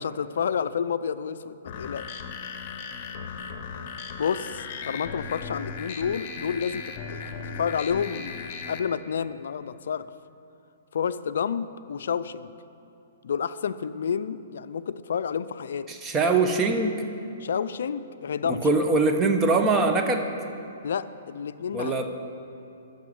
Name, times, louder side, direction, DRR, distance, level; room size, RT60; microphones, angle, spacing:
voice 1, 0.0-2.2 4.2-10.1 10.9-12.5 13.2-15.9 17.4-18.7 20.8-22.1, left 7 dB, 70° left, 14 dB, 0.4 m, -30 dB
sound 1, 1.7-8.8, left 5 dB, 45° left, 0.8 m, -37 dB
voice 2, 15.9-16.9 18.5-20.3 21.7-22.1, right 3 dB, 20° right, 5 dB, 0.9 m, -22 dB
10.5 x 6.7 x 7.8 m, 2.8 s
hypercardioid pair, 125°, 0 cm